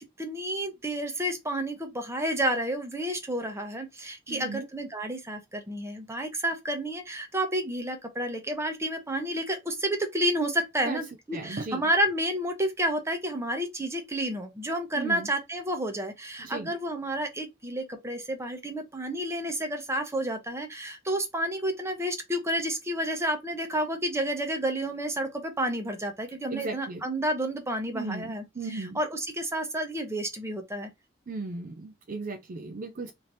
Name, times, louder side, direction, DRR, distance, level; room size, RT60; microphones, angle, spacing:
voice 1, 0.2-28.4 28.7-30.9, right 1 dB, 15° right, 0.9 m, -30 dB
voice 2, 4.3-4.7 10.9-11.0 11.3-11.9 14.9-15.3 16.4-16.7 26.5-27.0 27.9-29.0 31.3-33.1, right 3 dB, 45° right, 0.4 m, -36 dB
3.2 x 2.9 x 3.9 m
head